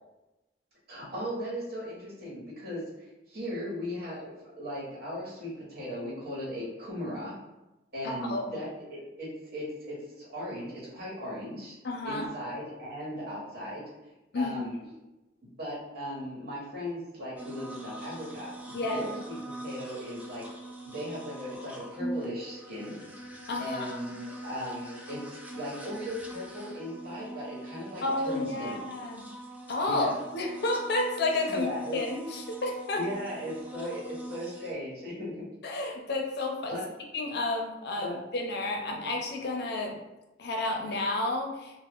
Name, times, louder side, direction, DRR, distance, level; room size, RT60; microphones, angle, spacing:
voice 1, 0.9-2.8 3.3-7.3 7.9-11.7 12.0-13.8 14.3-14.7 15.6-19.3 19.6-20.4 20.8-23.0 23.6-28.8 29.8-30.2 31.5-32.0 32.9-35.4 36.7-36.8 38.0-38.2, equal, 60° right, -7 dB, 1.2 m, -37 dB
voice 2, 8.0-8.5 11.8-12.3 14.3-14.9 18.7-19.1 23.5-24.0 28.0-29.2 29.7-33.0 35.6-36.8 37.1-40.0 40.4-41.8, left 2 dB, 60° left, 2 dB, 0.5 m, -31 dB
sound 1, 17.4-34.7, right 1 dB, 10° right, 0.3 m, -43 dB
2.3 x 2.0 x 3.4 m, 1.0 s
head